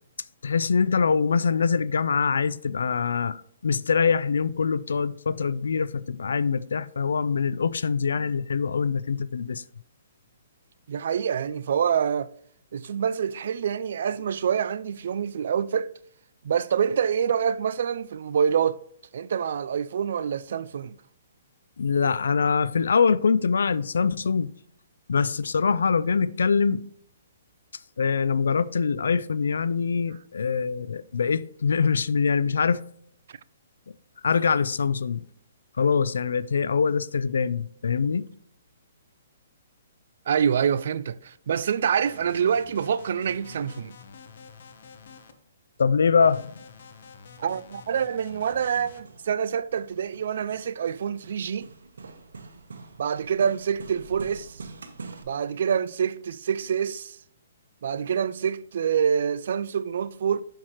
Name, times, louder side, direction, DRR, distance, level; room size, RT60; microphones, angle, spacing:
voice 1, 0.4-9.6 21.8-24.5 25.1-26.8 28.0-32.8 34.2-35.2 35.8-38.3 45.8-46.5, left 5 dB, 85° left, 0.3 m, -24 dB
voice 2, 10.9-12.3 12.7-15.9 16.4-18.8 19.1-21.0 40.3-44.0 47.4-51.7 53.0-54.6 55.2-57.2 57.8-60.4, right 7 dB, 60° right, 0.3 m, -26 dB
sound 1, 41.9-45.3 46.2-49.0, left 5 dB, 60° left, 0.8 m, -48 dB
Hammer, 47.7-55.2, right 3 dB, 90° right, 0.9 m, -45 dB
6.4 x 5.7 x 3.0 m
hypercardioid pair, 155°, 0 cm